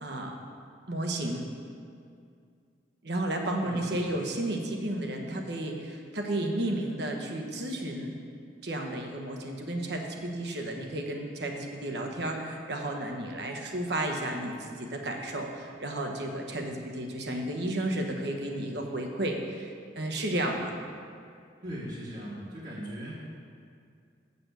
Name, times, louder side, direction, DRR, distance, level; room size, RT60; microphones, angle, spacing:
voice 1, 0.0-0.4 0.9-1.5 3.0-8.1 8.6-20.8, right 1 dB, 65° right, 2 dB, 1.1 m, -32 dB
voice 2, 3.6-4.0 21.6-23.2, equal, 45° right, -6 dB, 1.4 m, -39 dB
7.7 x 6.9 x 6.8 m, 2.3 s
head